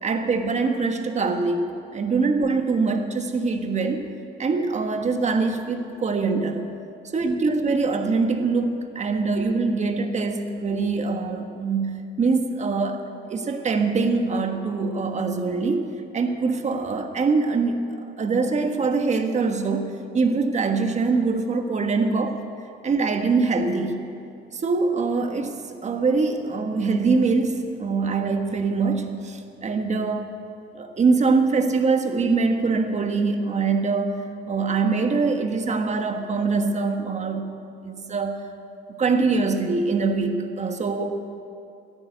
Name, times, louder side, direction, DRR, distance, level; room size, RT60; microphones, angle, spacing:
voice 1, 0.0-1.6 1.9-4.1 4.4-6.6 7.1-15.9 16.1-22.4 22.8-24.0 24.5-30.3 30.7-37.5 37.8-38.5 39.0-41.2, right 4 dB, 40° right, 6 dB, 1.4 m, -23 dB
17.0 x 10.5 x 8.0 m, 2.5 s
cardioid pair, 110°, 18 cm